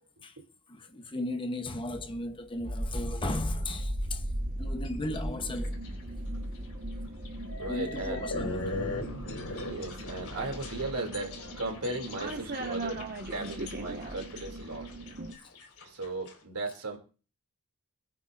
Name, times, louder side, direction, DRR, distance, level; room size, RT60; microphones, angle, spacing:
voice 1, 0.7-4.2 4.6-5.8 7.7-8.9, left 1 dB, 25° left, 0.9 m, -36 dB
sound 1, 2.5-15.3, right 1 dB, 40° right, 1.5 m, -37 dB
sound 2, 4.8-5.2 5.6-5.9 6.3-6.4 7.2-16.3, left 2 dB, 75° left, 3.4 m, -40 dB
voice 2, 7.6-8.2 9.4-14.9 15.8-17.0, right 2 dB, 85° right, 2.7 m, -36 dB
27.0 x 9.0 x 2.6 m
head